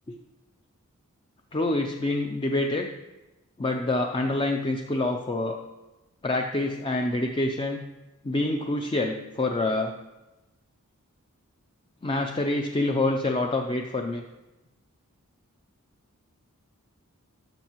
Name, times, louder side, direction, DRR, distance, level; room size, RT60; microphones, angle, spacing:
voice 1, 1.5-2.9 3.6-5.6 6.2-7.8 8.2-9.9 12.0-14.2, left 2 dB, 25° left, 3 dB, 0.5 m, -26 dB
13.0 x 6.5 x 3.0 m, 1.1 s
head